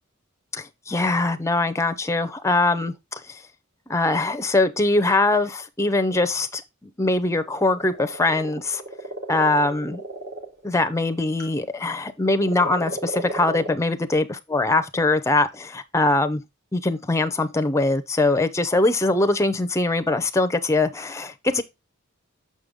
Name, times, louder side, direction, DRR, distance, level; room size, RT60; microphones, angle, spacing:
voice 1, 0.5-3.4 3.9-8.8 9.3-10.0 10.6-16.4 16.7-21.6, left 2 dB, 15° left, 0.6 m, -22 dB
sound 1, 7.4-11.7 12.4-13.7, right 2 dB, 50° right, 2.4 m, -34 dB
6.6 x 5.3 x 3.6 m
head